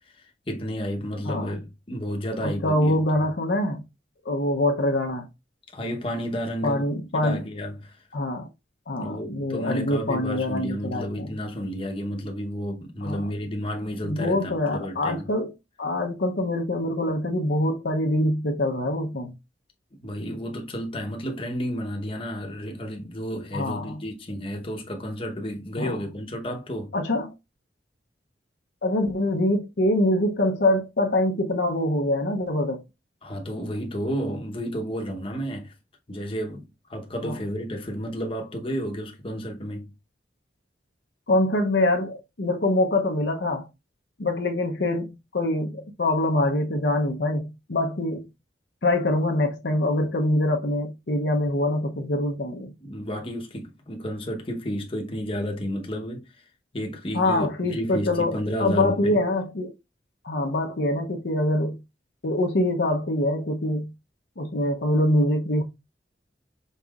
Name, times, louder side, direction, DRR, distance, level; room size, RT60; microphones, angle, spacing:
voice 1, 0.2-3.0 5.7-6.9 7.1-8.0 9.0-15.3 20.0-26.9 33.2-35.7 36.1-39.9 52.8-56.3 56.7-59.2, equal, 30° left, 0.9 m, -31 dB
voice 2, 2.4-3.8 4.2-5.3 6.6-7.4 8.1-8.5 8.9-11.3 13.0-13.3 14.0-15.5 15.8-19.3 23.5-24.0 25.8-26.0 26.9-27.3 28.8-32.8 37.2-37.4 41.3-43.7 44.2-48.3 48.8-52.7 57.1-59.7 60.2-61.8 62.2-63.9 64.4-65.6, left 1 dB, 70° left, 0.8 m, -24 dB
5.5 x 4.0 x 2.4 m
head